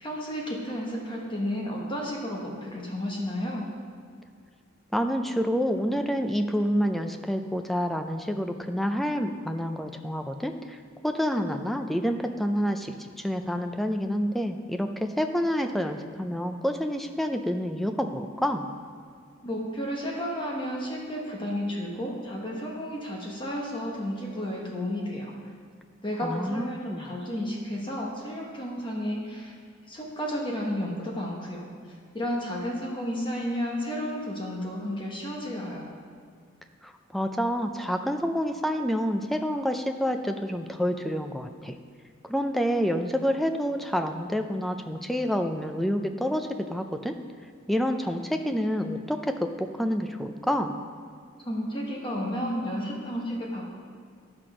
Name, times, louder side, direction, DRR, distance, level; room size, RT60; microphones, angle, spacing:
voice 1, 0.0-3.7 19.4-25.3 26.0-29.6 29.9-31.6 32.1-35.9 51.4-53.8, equal, 25° left, -2 dB, 1.2 m, -32 dB
voice 2, 4.9-18.7 26.2-27.1 36.8-41.8 42.2-47.1 47.7-50.8, equal, ahead, 5 dB, 0.4 m, -28 dB
11.5 x 6.0 x 5.0 m, 2.2 s
head